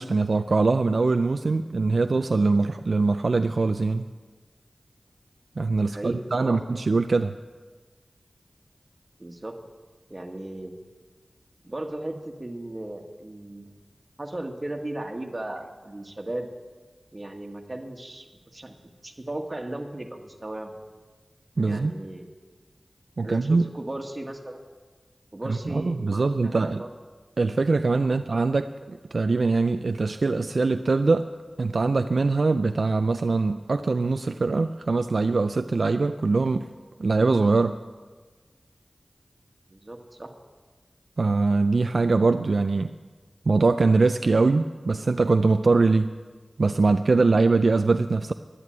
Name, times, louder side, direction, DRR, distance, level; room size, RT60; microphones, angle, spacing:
voice 1, 0.0-4.1 5.6-7.3 21.6-21.9 23.2-23.7 25.4-26.8 27.4-31.3 31.6-36.7 37.0-37.8 41.2-42.9 43.5-46.2 46.6-48.3, right 3 dB, 70° right, 8 dB, 0.4 m, -22 dB
voice 2, 5.9-6.6 9.2-9.6 10.1-10.8 11.6-13.7 14.2-16.5 17.1-18.3 18.5-20.7 21.6-22.3 23.2-24.6 25.3-26.9 28.0-28.2 39.7-40.3, right 1 dB, 35° right, 3 dB, 1.7 m, -36 dB
11.0 x 11.0 x 8.7 m, 1.4 s
wide cardioid pair, 60°, 0 cm